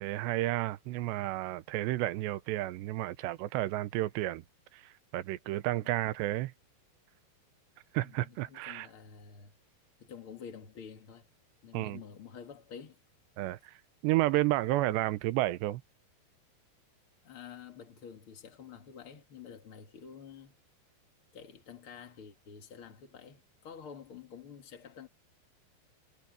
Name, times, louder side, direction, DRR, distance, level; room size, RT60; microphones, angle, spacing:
voice 1, 0.0-4.4 4.7-6.5 7.9-8.9 11.7-12.0 13.4-13.8 14.0-15.8, right 16 dB, 85° right, 3.0 m, -31 dB
voice 2, 8.0-9.5 10.0-11.3 11.6-13.0 17.2-20.6 21.3-25.1, left 7 dB, 45° left, 1.8 m, -49 dB
omnidirectional pair, 4.9 m